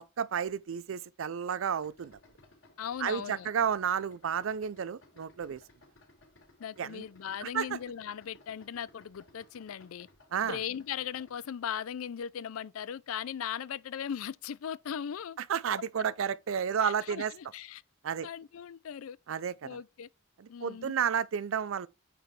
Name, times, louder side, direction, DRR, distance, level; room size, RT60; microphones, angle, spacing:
voice 1, 0.0-2.2 3.0-5.6 6.8-7.0 7.4-7.7 10.3-10.6 15.5-17.3 18.0-18.3 19.3-19.8 20.4-21.9, right 7 dB, 75° right, 0.4 m, -31 dB
Idling, 1.8-11.4, left 2 dB, 65° left, 4.0 m, -60 dB
voice 2, 2.8-3.5 6.6-10.1 10.4-15.4 16.8-17.8 18.2-19.2 19.6-20.1 20.5-20.9, left 8 dB, 90° left, 0.4 m, -38 dB
9.1 x 4.6 x 3.2 m
head